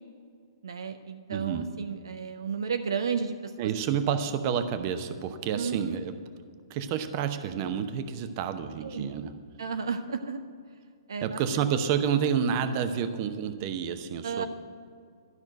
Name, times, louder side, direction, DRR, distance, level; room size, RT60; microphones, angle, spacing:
voice 1, 0.6-3.7 5.5-6.0 8.8-9.1 9.6-10.4 11.1-11.7 14.2-14.5, right 6 dB, 70° right, 8 dB, 0.6 m, -33 dB
voice 2, 1.3-1.7 3.6-6.1 6.7-9.3 11.2-14.5, right 8 dB, 40° right, 9 dB, 0.8 m, -29 dB
12.5 x 6.0 x 9.0 m, 2.2 s
figure-of-eight pair, 120°, 2 cm